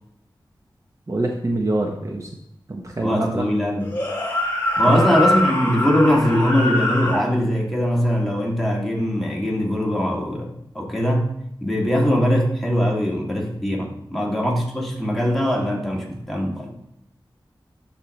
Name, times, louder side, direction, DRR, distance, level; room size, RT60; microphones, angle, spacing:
voice 1, 1.1-2.3 2.7-3.5 4.9-5.2, right 2 dB, 40° right, 1 dB, 0.8 m, -25 dB
voice 2, 3.0-4.0 4.8-11.3 11.6-16.7, equal, ahead, -2 dB, 1.8 m, -21 dB
sound 1, 3.8-7.3, left 1 dB, 25° left, 2.4 m, -23 dB
12.0 x 4.3 x 3.2 m, 0.77 s
wide cardioid pair, 75°, 9 cm